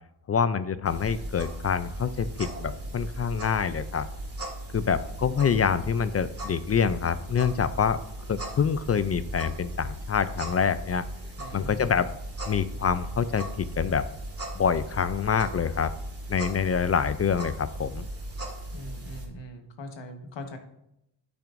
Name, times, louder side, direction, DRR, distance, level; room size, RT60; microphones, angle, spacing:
voice 1, 0.3-4.1 4.7-8.0 8.3-11.0 11.5-12.1 12.5-14.1 14.5-15.9 16.3-18.1, left 7 dB, 35° left, 13 dB, 0.4 m, -26 dB
sound 1, 0.9-19.3, right 1 dB, 30° right, 2.1 m, -37 dB
voice 2, 11.4-12.0 18.7-20.6, left 1 dB, 75° left, 5 dB, 1.3 m, -41 dB
12.0 x 5.9 x 2.6 m, 0.80 s
cardioid pair, 100°, 44 cm